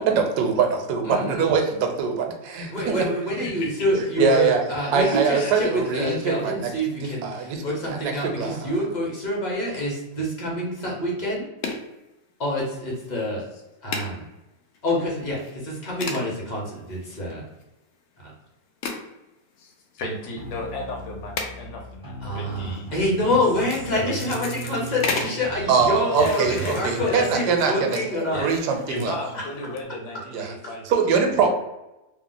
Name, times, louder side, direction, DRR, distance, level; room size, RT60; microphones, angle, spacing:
voice 1, 0.0-3.1 4.2-4.6 4.9-6.7 7.0-8.7 25.7-28.0 28.3-29.1 30.3-30.5 30.8-31.5, right 5 dB, 75° right, 3 dB, 1.1 m, -23 dB
voice 2, 1.0-1.5 2.7-11.4 12.4-13.4 13.8-14.2 14.8-17.4 18.2-18.3 22.2-28.5, left 1 dB, 40° left, -4 dB, 0.7 m, -27 dB
voice 3, 4.8-5.7 19.6-23.4 23.9-24.4 26.2-27.2 28.3-31.0, left 1 dB, 70° left, 0 dB, 1.2 m, -35 dB
sound 1, 11.6-11.9 12.6-13.0 13.3-13.4 13.9-14.1 14.7-14.8 15.4-15.5 16.0-16.3 16.9-17.6 18.8-19.1 20.0-20.1 21.4-21.5 22.4-22.7 23.4-23.8 24.2-25.4 26.1-29.1 29.6-29.8, left 4 dB, 85° left, 0.6 m, -33 dB
sound 2, 20.4-27.3, right 2 dB, 5° right, 0.4 m, -39 dB
2.9 x 2.0 x 3.7 m, 0.99 s
omnidirectional pair, 1.8 m